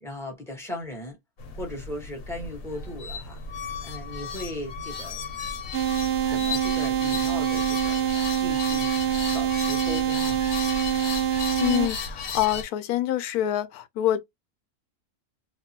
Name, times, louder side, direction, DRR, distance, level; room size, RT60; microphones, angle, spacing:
voice 1, 0.0-1.2 1.5-5.2 6.3-8.1 8.3-9.0 9.3-10.4, left 1 dB, ahead, 1.0 m, -38 dB
sound 1, 1.4-12.6, left 5 dB, 65° left, 1.1 m, -34 dB
sound 2, 5.7-11.9, right 11 dB, 85° right, 1.2 m, -25 dB
voice 2, 11.6-14.2, left 12 dB, 85° left, 1.1 m, -26 dB
2.9 x 2.3 x 2.7 m
omnidirectional pair, 1.6 m